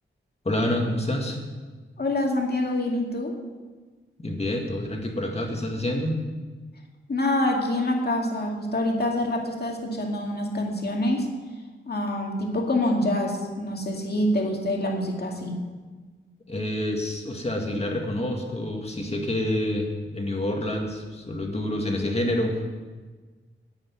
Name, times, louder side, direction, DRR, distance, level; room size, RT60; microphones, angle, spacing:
voice 1, 0.4-1.4 4.2-6.2 16.5-22.6, left 1 dB, 30° left, 1 dB, 2.1 m, -27 dB
voice 2, 2.0-3.4 7.1-11.3 11.9-15.6, left 1 dB, 50° left, 1 dB, 2.2 m, -26 dB
9.8 x 8.6 x 9.8 m, 1.4 s
wide cardioid pair, 140°, 21 cm